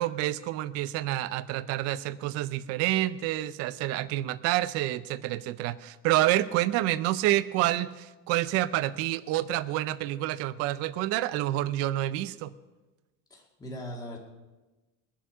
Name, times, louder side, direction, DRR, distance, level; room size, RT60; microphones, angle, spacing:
voice 1, 0.0-12.5, right 15 dB, 40° right, 15 dB, 0.4 m, -28 dB
voice 2, 13.3-14.2, equal, 10° left, -2 dB, 1.9 m, -39 dB
22.0 x 7.5 x 5.6 m, 1.1 s
cardioid pair, 180°, 40 cm